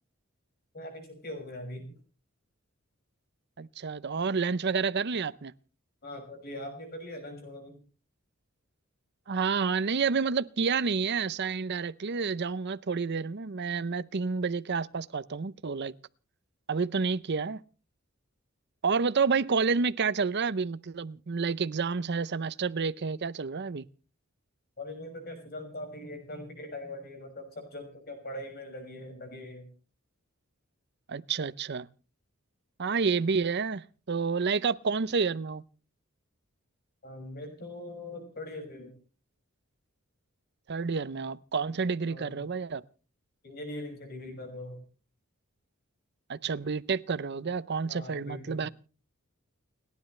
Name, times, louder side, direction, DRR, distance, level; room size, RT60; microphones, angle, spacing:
voice 1, 0.7-1.9 6.0-7.8 24.8-29.7 37.0-38.9 42.1-42.4 43.4-44.8 47.9-48.6, left 1 dB, 50° left, 6.1 m, -41 dB
voice 2, 3.6-5.5 9.3-15.9 16.7-17.6 18.8-23.8 31.1-31.9 32.8-35.6 40.7-42.8 46.3-48.7, right 5 dB, 55° right, 0.6 m, -29 dB
30.0 x 10.5 x 3.2 m
head